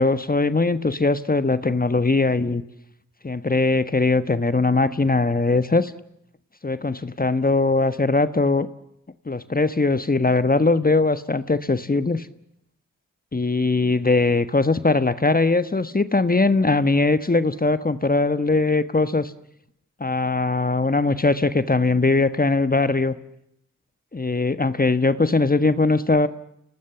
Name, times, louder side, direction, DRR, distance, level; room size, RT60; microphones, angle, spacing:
voice 1, 0.0-2.6 3.2-5.9 6.6-8.7 9.3-12.3 13.3-19.3 20.0-23.2 24.1-26.3, left 3 dB, 30° left, 13 dB, 1.4 m, -20 dB
29.0 x 19.0 x 7.1 m, 0.79 s
cardioid pair, 40°, 31 cm